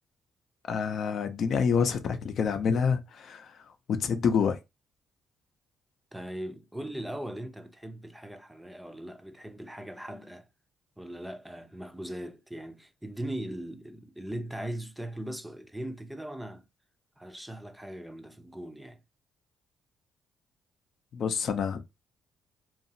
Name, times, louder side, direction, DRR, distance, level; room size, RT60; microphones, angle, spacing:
voice 1, 0.7-3.6 3.9-4.6 21.1-21.8, left 6 dB, 65° left, 0.5 m, -27 dB
voice 2, 6.1-10.5 11.0-16.6 17.2-19.0, right 1 dB, 5° right, 0.4 m, -39 dB
2.8 x 2.4 x 2.6 m
cardioid pair, 90°, 0 cm